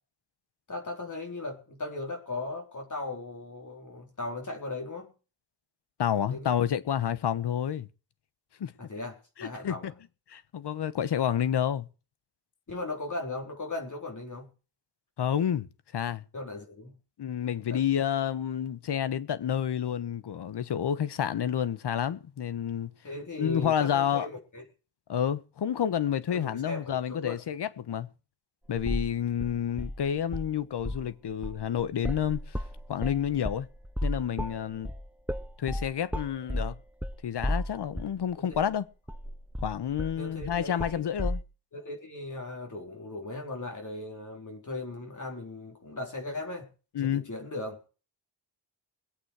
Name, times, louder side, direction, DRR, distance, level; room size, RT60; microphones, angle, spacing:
voice 1, 0.7-5.1 6.2-6.6 8.8-9.9 12.7-14.5 16.3-17.0 17.7-17.8 23.0-24.6 26.3-27.4 38.4-38.6 40.2-41.1 41.7-46.7 47.0-47.8, left 2 dB, 45° left, 4.3 m, -38 dB
voice 2, 6.0-7.9 8.6-8.7 9.4-9.9 10.3-11.9 15.2-15.7 15.9-16.2 17.2-22.9 23.4-24.3 25.1-28.1 28.7-32.5 32.9-33.7 34.0-34.9 35.6-36.8 37.2-38.8 39.6-41.4 46.9-47.3, left 9 dB, 65° left, 1.2 m, -29 dB
sound 1, 28.8-29.1 29.4-30.5 30.8-31.1 31.4-38.2 38.5-38.6 39.1-41.4, equal, 5° right, 0.8 m, -33 dB
22.0 x 8.5 x 4.8 m
cardioid pair, 70°, 43 cm